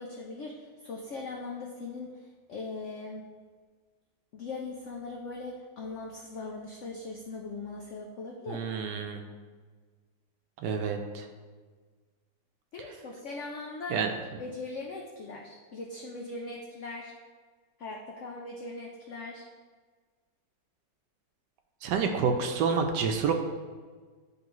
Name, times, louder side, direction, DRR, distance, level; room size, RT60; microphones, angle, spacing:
voice 1, 0.0-3.3 4.3-8.6 12.7-14.0 14.4-17.1 17.8-19.4, left 3 dB, 80° left, 0 dB, 0.6 m, -40 dB
voice 2, 8.5-9.2 10.6-11.3 13.9-14.1 21.8-23.3, right 5 dB, 75° right, 5 dB, 1.2 m, -28 dB
9.6 x 3.2 x 3.0 m, 1.5 s
omnidirectional pair, 2.0 m